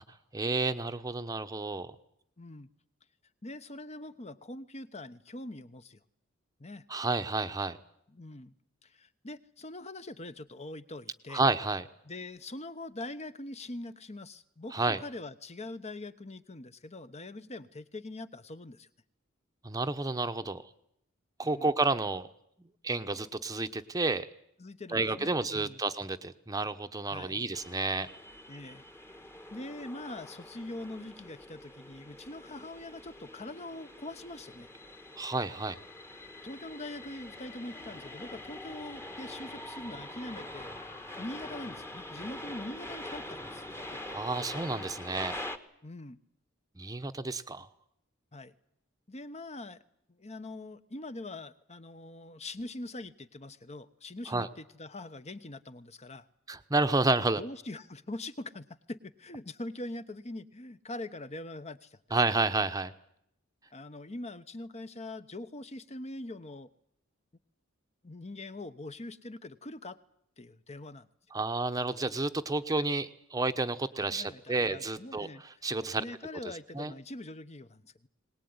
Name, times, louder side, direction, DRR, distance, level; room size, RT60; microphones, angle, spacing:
voice 1, 0.3-1.9 6.9-7.8 11.3-11.8 14.7-15.0 19.6-20.6 21.4-22.3 22.8-24.3 24.9-28.1 35.2-35.8 44.1-45.4 46.8-47.7 54.3-54.5 56.5-57.4 62.1-62.9 71.3-76.0 76.7-76.9, right 3 dB, 15° right, 8 dB, 1.0 m, -30 dB
voice 2, 2.4-2.7 3.4-6.0 6.6-6.8 8.1-8.5 8.8-11.4 12.0-18.9 21.4-21.7 24.6-25.8 27.1-27.4 28.5-28.8 29.5-34.7 36.4-40.8 41.2-43.6 43.9-44.2 45.8-46.2 48.3-48.5 49.1-49.8 50.1-56.3 57.4-62.0 63.7-66.7 68.0-70.0 70.4-71.1 74.1-75.4 76.0-78.1, left 2 dB, 35° left, 12 dB, 1.1 m, -43 dB
sound 1, 27.5-45.6, left 1 dB, 15° left, 1.4 m, -44 dB
22.0 x 19.5 x 9.6 m, 0.74 s
head